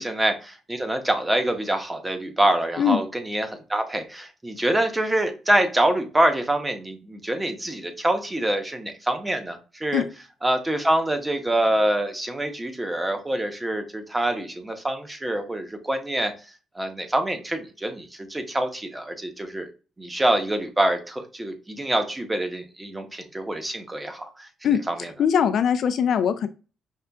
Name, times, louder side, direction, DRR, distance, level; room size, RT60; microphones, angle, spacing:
voice 1, 0.0-10.0 10.4-16.3 16.7-19.7 20.0-24.5 24.9-25.1, right 1 dB, 15° right, 6 dB, 0.8 m, -25 dB
voice 2, 25.2-26.5, left 8 dB, 65° left, 11 dB, 0.4 m, -21 dB
5.4 x 2.4 x 2.3 m, 0.34 s
cardioid pair, 90°, 0 cm